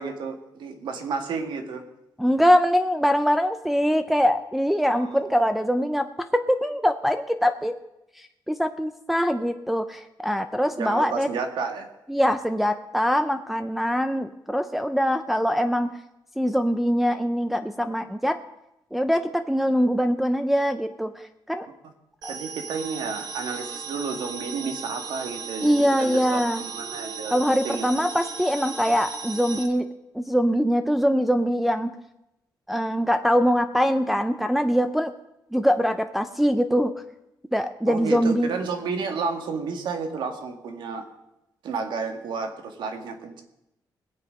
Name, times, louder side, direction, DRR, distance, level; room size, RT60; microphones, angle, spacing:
voice 1, 0.0-1.9 4.9-5.2 10.8-11.9 22.3-27.4 27.6-27.9 37.9-41.1 41.6-43.4, right 5 dB, 75° right, 6 dB, 1.9 m, -31 dB
voice 2, 2.2-6.1 6.3-7.7 8.2-11.3 12.1-15.9 16.4-18.4 18.9-21.7 22.2-22.3 25.6-26.6 27.3-29.9 30.1-31.9 32.7-35.1 35.5-36.9 37.5-38.5, equal, ahead, 6 dB, 0.5 m, -23 dB
sound 1, 22.2-29.7, right 5 dB, 55° right, 1.6 m, -36 dB
21.0 x 8.0 x 5.2 m, 0.89 s
wide cardioid pair, 165°, 8 cm